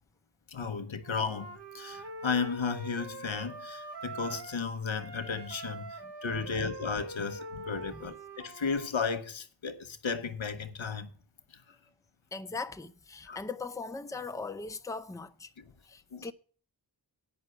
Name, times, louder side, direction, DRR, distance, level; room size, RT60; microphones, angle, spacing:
voice 1, 0.5-11.1 13.3-13.4 16.1-16.3, left 5 dB, 85° left, 1.0 m, -34 dB
Wind instrument woodwind instrument, 1.0-4.7 5.0-8.9, right 1 dB, 60° right, 1.3 m, -44 dB
voice 2, 6.0-6.7 7.9-8.1 12.3-15.5 15.8-16.3, left 4 dB, 5° left, 0.5 m, -40 dB
8.9 x 5.7 x 8.0 m
wide cardioid pair, 65°, 46 cm